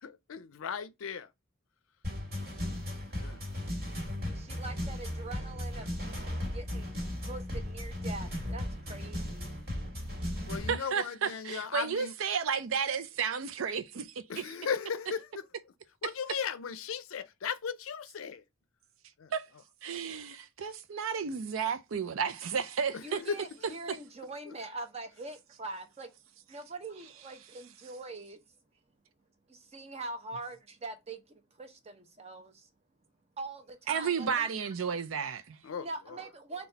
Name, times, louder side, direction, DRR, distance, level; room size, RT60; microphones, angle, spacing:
voice 1, 0.0-1.3 3.2-3.4 3.8-3.9 10.5-12.1 14.3-15.4 16.0-18.4 19.2-19.3 22.9-23.4 35.6-36.2, left 6 dB, 75° left, 0.5 m, -37 dB
sound 1, 2.0-10.8, left 1 dB, 50° right, 1.8 m, -36 dB
voice 2, 4.3-5.9 6.5-6.9 7.2-9.6 23.0-26.1 26.5-28.4 29.5-32.7 33.4-34.6 35.8-36.7, right 3 dB, 30° right, 0.7 m, -43 dB
voice 3, 10.7-14.4 19.3-19.5 19.8-23.2 23.9-24.0 33.9-35.6, right 6 dB, 75° right, 0.5 m, -32 dB
4.0 x 2.3 x 3.9 m
head